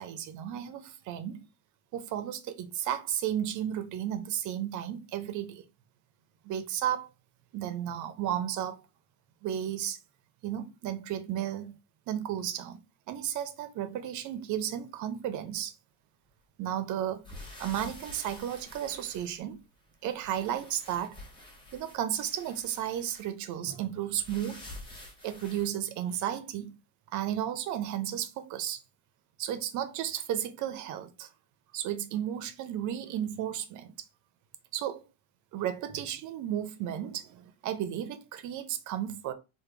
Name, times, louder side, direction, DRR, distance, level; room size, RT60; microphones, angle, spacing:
voice 1, 0.0-1.4 1.9-5.6 6.4-7.1 7.5-8.8 9.4-10.0 10.4-11.8 12.1-12.8 13.1-15.7 16.6-17.3 17.6-19.6 20.0-21.2 21.7-24.6 25.2-26.8 27.1-28.8 29.4-31.3 31.7-33.9 34.7-35.0 35.5-39.3, right 10 dB, 45° right, 0.6 m, -33 dB
sound 1, 17.2-19.7 20.0-23.3 24.2-25.7, left 1 dB, 10° left, 1.2 m, -48 dB
3.4 x 2.2 x 3.2 m
supercardioid pair, 110°, 43 cm